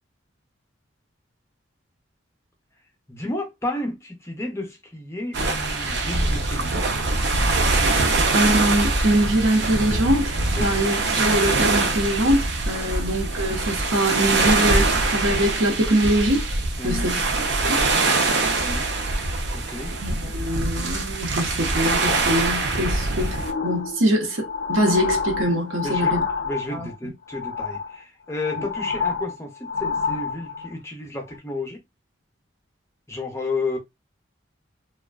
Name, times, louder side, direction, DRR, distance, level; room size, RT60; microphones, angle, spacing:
voice 1, 3.1-6.9 10.5-10.7 16.8-17.2 18.6-18.9 19.5-19.9 25.8-26.1 26.4-31.8 33.1-33.8, left 2 dB, 15° left, 0.5 m, -32 dB
sound 1, 5.3-23.5, right 3 dB, 60° right, 0.5 m, -23 dB
voice 2, 8.3-16.4 16.8-17.2 17.6-17.8 20.0-26.2 26.7-26.9 28.6-28.7, right 1 dB, 90° right, 0.9 m, -23 dB
sound 2, 23.3-27.0 27.3-28.0 28.3-30.7 31.3-31.4, left 5 dB, 75° left, 0.4 m, -28 dB
2.5 x 2.2 x 2.3 m
head